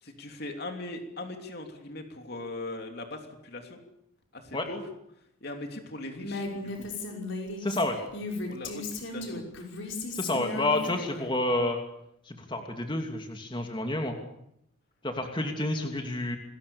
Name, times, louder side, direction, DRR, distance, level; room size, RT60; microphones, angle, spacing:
voice 1, 0.0-3.8 4.3-4.9 5.4-6.9 8.5-9.4 10.8-11.1, left 2 dB, 50° left, 4 dB, 3.1 m, -40 dB
Female speech woman speaking, 6.2-11.3, left 2 dB, 65° left, 5.7 m, -36 dB
voice 2, 7.6-8.0 10.1-11.8 12.3-14.2 15.0-16.4, left 1 dB, 25° left, 4 dB, 2.7 m, -29 dB
28.0 x 21.0 x 7.1 m, 0.78 s
head